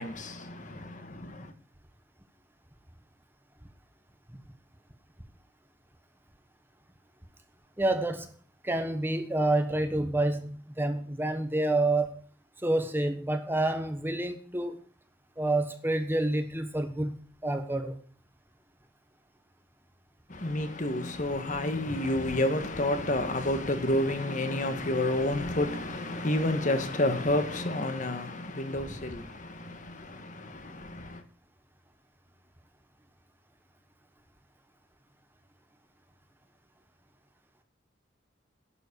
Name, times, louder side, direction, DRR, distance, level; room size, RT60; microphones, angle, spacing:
voice 1, 0.0-1.5 20.3-31.2, left 1 dB, 40° left, 1.6 m, -30 dB
voice 2, 7.8-8.3 8.6-12.2 12.6-14.8 15.4-18.0, right 2 dB, 10° right, 1.3 m, -28 dB
11.5 x 7.4 x 8.6 m
head